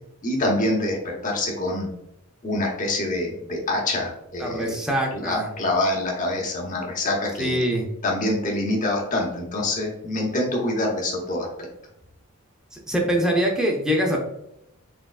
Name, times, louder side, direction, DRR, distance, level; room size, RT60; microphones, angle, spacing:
voice 1, 0.2-1.0 1.2-1.9 2.4-4.7 5.1-7.6 8.0-11.5, left 1 dB, 35° left, -1 dB, 0.8 m, -25 dB
voice 2, 4.4-5.5 7.4-7.9 12.7-14.2, equal, 5° right, -1 dB, 0.5 m, -23 dB
3.5 x 3.1 x 2.3 m, 0.79 s
head